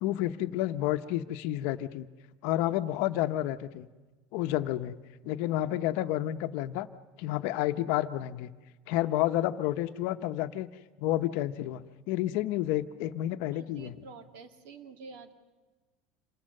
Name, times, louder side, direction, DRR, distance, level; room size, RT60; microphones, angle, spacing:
voice 1, 0.0-2.1 2.4-3.9 4.3-6.9 7.2-8.5 8.9-10.7 11.0-14.0, left 14 dB, 55° left, 10 dB, 0.8 m, -30 dB
voice 2, 13.5-15.3, right 5 dB, 60° right, 7 dB, 2.1 m, -48 dB
27.5 x 24.0 x 6.6 m, 1.2 s
cardioid pair, 165°, 4 cm